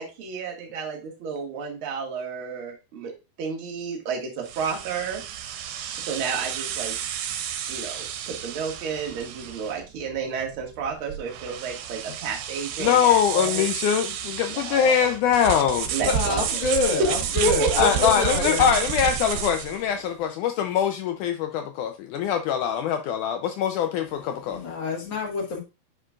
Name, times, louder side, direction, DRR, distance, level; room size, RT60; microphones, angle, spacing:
voice 1, 0.0-3.1 3.4-5.2 6.1-7.0 7.7-13.6 14.5-15.1 15.9-16.4 17.4-18.1, right 5 dB, 45° right, 2.0 m, -31 dB
sound 1, 4.4-19.8, right 9 dB, 90° right, 2.7 m, -31 dB
voice 2, 12.8-16.2 17.8-24.6, left 8 dB, 80° left, 1.8 m, -23 dB
voice 3, 16.0-18.7 19.9-20.0 24.2-25.6, left 4 dB, 50° left, 1.5 m, -28 dB
9.8 x 5.1 x 2.4 m
omnidirectional pair, 4.1 m